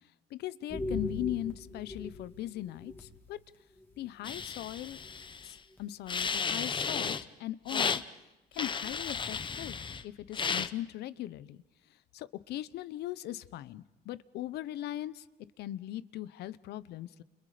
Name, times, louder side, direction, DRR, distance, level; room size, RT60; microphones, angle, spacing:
voice 1, 0.3-3.4 4.0-5.0 5.4-8.0 8.5-9.7 10.0-11.6 12.1-15.3 15.6-17.2, left 14 dB, 75° left, 16 dB, 1.0 m, -39 dB
sound 1, 0.7-3.4 3.8-4.0 5.1-5.2 5.8-5.9 6.2-6.3, left 1 dB, 10° left, 3.0 m, -39 dB
sound 2, 4.2-5.6 6.1-7.2 7.7-8.0 8.6-10.0 10.3-10.7, left 5 dB, 30° left, 1.0 m, -34 dB
29.5 x 29.5 x 5.1 m, 0.99 s
cardioid pair, 110°, 17 cm